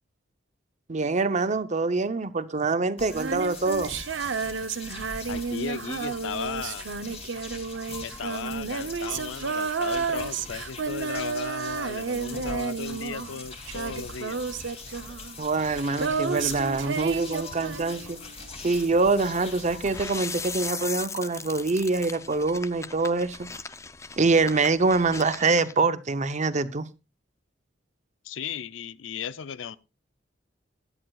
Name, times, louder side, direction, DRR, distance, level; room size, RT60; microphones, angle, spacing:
voice 1, 0.9-3.9 15.4-18.2 18.6-23.5 24.2-26.9, right 3 dB, 40° right, 0.7 m, -25 dB
sound 1, 3.0-20.7, left 3 dB, 35° left, 2.8 m, -42 dB
Female singing, 3.1-18.4 20.0-20.1, right 5 dB, 70° right, 0.7 m, -32 dB
voice 2, 5.3-6.9 8.0-14.4 28.2-29.8, left 6 dB, 85° left, 0.5 m, -36 dB
sound 2, 19.9-25.7, left 4 dB, 15° left, 0.5 m, -38 dB
16.5 x 11.0 x 2.4 m
head